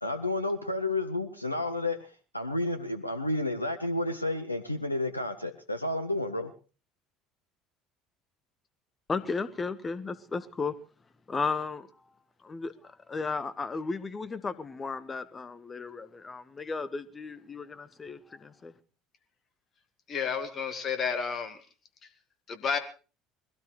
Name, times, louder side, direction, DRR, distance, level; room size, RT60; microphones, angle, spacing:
voice 1, 0.0-6.5, left 2 dB, 90° left, 10 dB, 0.7 m, -31 dB
voice 2, 9.1-10.7 11.3-11.9 12.4-18.7, left 4 dB, 25° left, 15 dB, 1.3 m, -34 dB
voice 3, 20.1-21.6 22.5-22.8, left 6 dB, 40° left, 9 dB, 1.8 m, -31 dB
21.5 x 17.0 x 3.2 m, 0.36 s
figure-of-eight pair, 60°, 0 cm